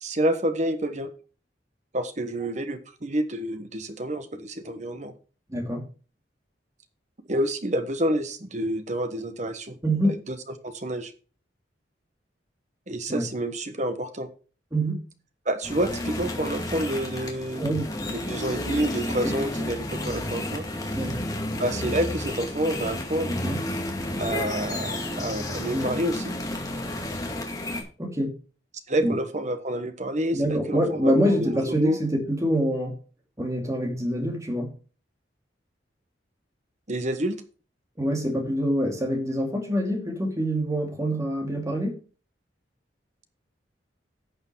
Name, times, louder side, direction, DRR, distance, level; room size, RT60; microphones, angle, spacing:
voice 1, 0.0-1.1 1.9-5.1 7.3-9.8 10.1-10.4 10.6-11.1 12.9-14.3 15.4-17.6 18.1-20.6 21.6-23.3 24.2-26.3 28.9-32.0 36.9-37.4, right 1 dB, 40° right, 9 dB, 1.2 m, -28 dB
voice 2, 5.5-5.8 9.8-10.2 13.1-13.3 14.7-15.0 17.6-17.8 19.2-19.3 20.9-21.2 23.3-23.6 25.7-25.9 28.0-28.3 29.0-29.2 30.3-33.0 33.4-34.7 38.0-42.0, equal, 15° right, 2 dB, 2.5 m, -25 dB
sound 1, 15.6-27.8, left 1 dB, 20° left, 2.1 m, -31 dB
11.5 x 6.7 x 4.7 m, 0.37 s
head